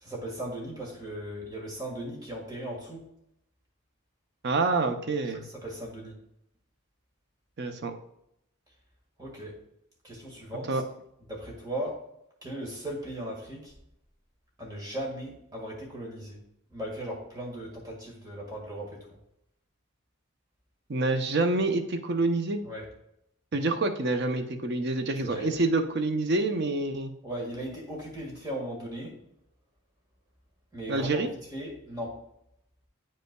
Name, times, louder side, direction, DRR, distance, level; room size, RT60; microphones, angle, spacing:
voice 1, 0.0-3.0 5.3-6.1 9.2-9.6 10.0-10.8 11.3-12.0 12.4-13.7 14.6-16.4 16.7-19.1 22.6-22.9 25.2-25.5 27.2-29.2 30.7-31.2 31.5-32.2, right 1 dB, 20° right, -2 dB, 1.7 m, -37 dB
voice 2, 4.4-5.5 7.6-7.9 10.7-10.8 20.9-22.6 23.5-27.1 30.9-31.3, right 2 dB, 50° right, 7 dB, 0.6 m, -27 dB
8.8 x 5.3 x 2.3 m, 0.79 s
head